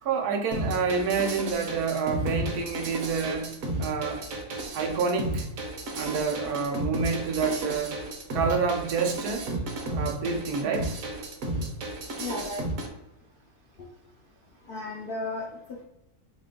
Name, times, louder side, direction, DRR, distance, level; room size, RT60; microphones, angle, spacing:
voice 1, 0.0-3.5 3.8-4.2 4.7-5.5 5.9-8.0 8.3-9.5 9.9-10.9, right 5 dB, 85° right, 2 dB, 1.2 m, -28 dB
sound 1, 0.5-12.9, right 1 dB, 65° right, 1.2 m, -33 dB
voice 2, 12.2-12.7 13.8-13.9 14.7-15.8, left 3 dB, 65° left, -2 dB, 0.5 m, -35 dB
3.3 x 3.0 x 3.7 m, 0.85 s
omnidirectional pair, 1.6 m